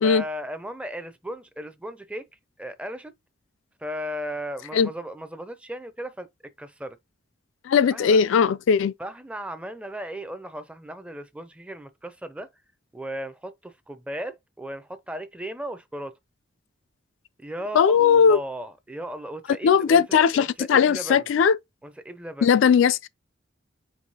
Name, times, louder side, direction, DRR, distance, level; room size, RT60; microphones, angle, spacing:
voice 1, 0.0-2.3 2.6-3.1 3.8-7.0 7.9-8.2 9.0-12.5 12.9-16.1 17.4-21.3 21.8-22.6, equal, 5° right, 0.5 m, -36 dB
voice 2, 7.7-8.9 17.7-18.4 19.6-21.6 22.4-23.1, left 6 dB, 75° left, 0.3 m, -18 dB
4.7 x 3.2 x 2.8 m
head